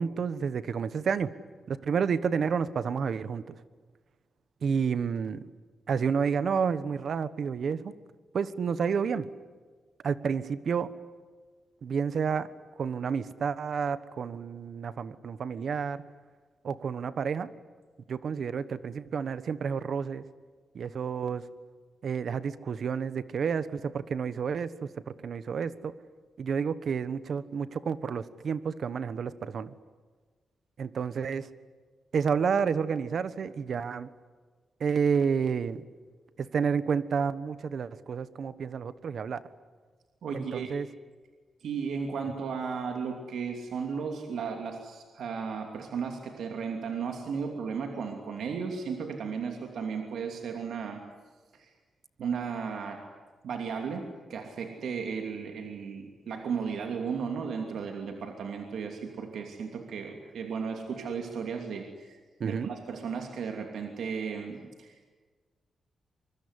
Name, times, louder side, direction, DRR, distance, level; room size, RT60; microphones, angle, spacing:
voice 1, 0.0-1.3 1.7-3.5 4.6-5.4 5.9-7.9 8.3-9.3 10.0-10.9 11.8-12.5 12.8-16.0 16.6-17.5 18.1-20.2 20.7-21.5 22.0-24.9 25.2-25.9 26.4-29.7 30.8-31.5 32.1-34.1 34.8-35.8 36.4-39.4 40.3-40.9 62.4-62.7, right 6 dB, 60° right, 14 dB, 1.2 m, -30 dB
voice 2, 40.2-40.7 41.6-51.0 51.5-51.7 52.2-53.0 53.4-65.1, right 6 dB, 80° right, 3 dB, 2.8 m, -35 dB
25.0 x 23.5 x 9.9 m, 1.4 s
wide cardioid pair, 135°, 0 cm